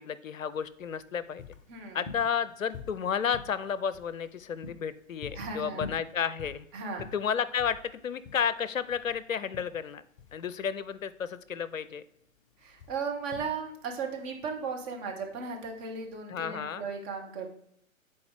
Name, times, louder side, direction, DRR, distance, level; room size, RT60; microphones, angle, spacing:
voice 1, 0.0-1.4 1.9-6.6 7.1-10.0 10.3-12.0 16.3-16.8, left 7 dB, 75° left, 16 dB, 0.6 m, -32 dB
sound 1, 0.5-16.2, left 5 dB, 25° left, 0.6 m, -48 dB
voice 2, 1.7-2.0 5.3-5.9 6.7-7.1 12.6-17.5, right 5 dB, 20° right, 1 dB, 1.1 m, -36 dB
10.5 x 4.4 x 3.3 m, 0.72 s
figure-of-eight pair, 125°, 41 cm